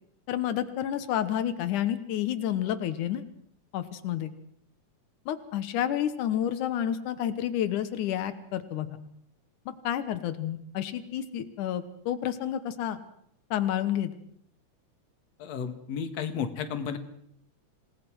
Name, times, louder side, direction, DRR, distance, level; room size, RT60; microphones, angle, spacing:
voice 1, 0.3-3.3 3.7-4.3 5.3-9.0 9.7-13.0 13.5-14.1, left 10 dB, 90° left, 10 dB, 2.7 m, -30 dB
voice 2, 15.4-17.0, left 7 dB, 65° left, 8 dB, 2.7 m, -33 dB
27.0 x 18.0 x 6.2 m, 0.69 s
omnidirectional pair, 3.4 m